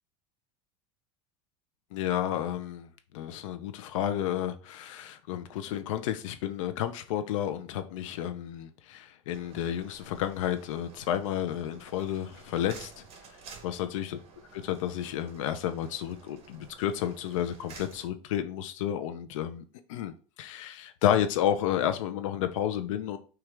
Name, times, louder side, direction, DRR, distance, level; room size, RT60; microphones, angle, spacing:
voice 1, 1.9-2.9 3.1-13.0 13.6-14.1 14.5-23.2, left 11 dB, 85° left, 0.5 m, -31 dB
sound 1, 9.3-18.1, right 5 dB, 40° right, 1.2 m, -52 dB
6.0 x 2.4 x 3.3 m
supercardioid pair, 125°, 16 cm